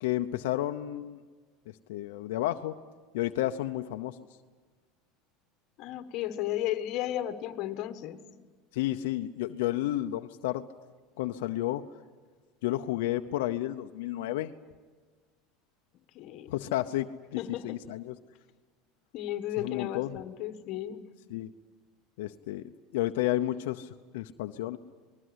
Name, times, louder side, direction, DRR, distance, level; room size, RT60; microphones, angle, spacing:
voice 1, 0.0-1.2 1.9-2.7 3.1-4.2 8.7-10.6 11.2-11.8 12.6-14.5 16.5-18.2 19.6-20.2 21.3-21.5 22.2-24.8, left 14 dB, 85° left, 6 dB, 0.7 m, -31 dB
voice 2, 5.8-8.2 16.1-16.5 17.4-17.8 19.1-21.0, left 12 dB, 50° left, 9 dB, 1.6 m, -34 dB
28.0 x 20.0 x 8.1 m, 1.4 s
supercardioid pair, 150°, 0 cm